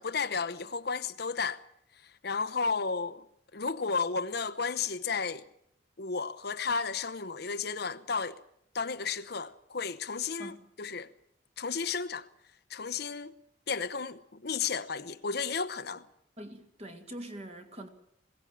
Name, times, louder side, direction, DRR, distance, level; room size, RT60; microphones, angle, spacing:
voice 1, 0.0-1.6 2.2-3.2 3.5-5.4 6.0-8.4 8.7-11.1 11.6-12.3 12.7-13.3 13.7-16.0, left 5 dB, 55° left, 0.9 m, -33 dB
voice 2, 10.4-10.7 16.4-17.9, right 1 dB, 35° right, 2.5 m, -44 dB
21.5 x 17.0 x 8.8 m
head